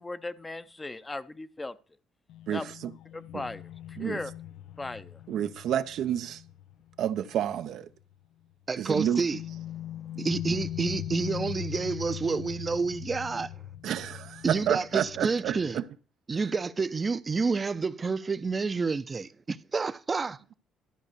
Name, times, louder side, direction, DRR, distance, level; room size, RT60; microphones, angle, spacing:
voice 1, 0.0-1.8 2.5-2.6 3.1-3.6 4.0-4.3 4.8-5.2, left 2 dB, 15° left, 0.6 m, -37 dB
sound 1, 2.3-7.7 8.0-8.1 9.3-15.9, left 12 dB, 75° left, 0.5 m, -40 dB
voice 2, 2.5-2.9 3.3-3.4 4.0-4.2 5.3-6.4 7.0-7.8 8.8-9.2 10.2-10.3 13.8-15.8, right 10 dB, 70° right, 0.6 m, -30 dB
voice 3, 8.7-9.4 10.2-13.5 14.4-15.8 16.3-20.5, right 4 dB, 25° right, 0.6 m, -29 dB
12.5 x 5.2 x 6.7 m
cardioid pair, 110°, 0 cm